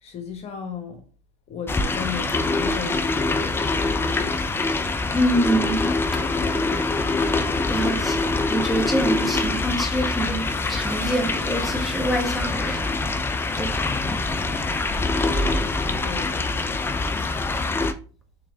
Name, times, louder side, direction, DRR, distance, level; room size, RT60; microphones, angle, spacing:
voice 1, 0.0-1.0 1.5-4.4 16.0-16.5, left 7 dB, 45° left, 1.1 m, -35 dB
sound 1, 1.7-17.9, left 3 dB, 15° left, 0.4 m, -24 dB
voice 2, 5.1-6.0 7.7-12.9 13.6-14.3, right 1 dB, ahead, 1.0 m, -26 dB
3.3 x 3.3 x 3.6 m
hypercardioid pair, 90°, 15 cm